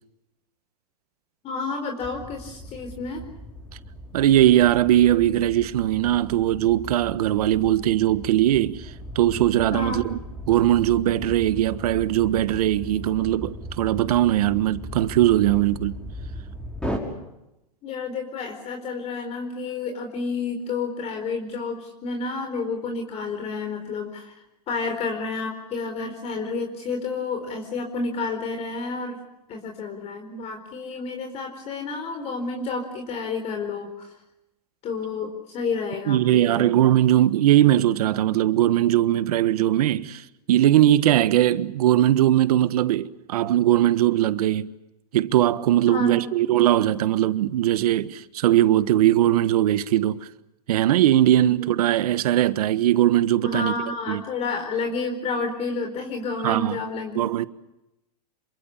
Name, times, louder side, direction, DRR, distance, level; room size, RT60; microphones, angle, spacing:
voice 1, 1.4-3.2 9.7-10.1 17.8-29.2 29.5-34.1 34.8-36.7 45.9-46.2 51.4-51.5 53.4-57.5, left 4 dB, 30° left, 4.4 m, -30 dB
sound 1, 2.0-17.0, equal, 5° left, 6.0 m, -38 dB
voice 2, 4.1-10.2 10.5-16.0 36.1-44.7 45.1-50.3 50.7-53.7 54.1-54.2 56.4-56.8 57.1-57.5, right 13 dB, 70° right, 1.4 m, -20 dB
27.5 x 24.5 x 7.3 m
hypercardioid pair, 130°, 20 cm